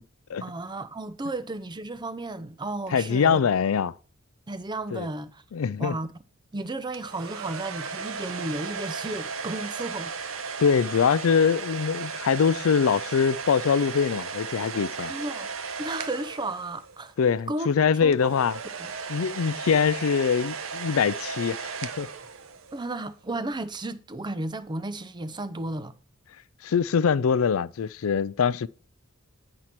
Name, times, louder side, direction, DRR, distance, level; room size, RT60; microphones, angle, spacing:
voice 1, 0.4-3.4 4.5-5.4 5.8-6.1 6.5-10.1 15.0-15.5 15.8-17.1 17.5-17.7 18.0-18.2 18.8-18.9 22.7-26.0, right 2 dB, 20° right, 0.5 m, -33 dB
voice 2, 2.9-3.9 4.9-5.1 5.5-6.0 10.6-15.1 17.2-18.6 19.1-21.7 22.0-22.1 26.6-28.7, left 6 dB, 70° left, 0.4 m, -23 dB
sound 1, 6.9-17.1 18.1-22.8, right 5 dB, 65° right, 0.8 m, -35 dB
9.7 x 4.5 x 5.9 m
head